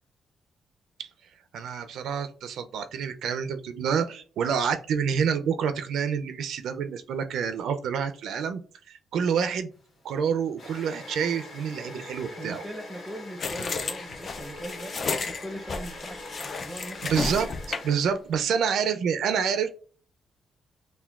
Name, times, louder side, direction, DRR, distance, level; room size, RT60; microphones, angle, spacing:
voice 1, 1.5-8.6 8.9-9.7 10.0-12.6 17.0-17.5 17.8-19.7, right 7 dB, 80° right, 9 dB, 0.3 m, -28 dB
sound 1, 9.8-18.5, left 2 dB, 65° left, 1.4 m, -43 dB
voice 2, 12.4-17.5, right 1 dB, 5° right, 6 dB, 0.6 m, -40 dB
sound 2, 13.4-18.0, left 4 dB, 40° left, 0.3 m, -32 dB
5.7 x 2.1 x 2.3 m, 0.41 s
cardioid pair, 125°, 0 cm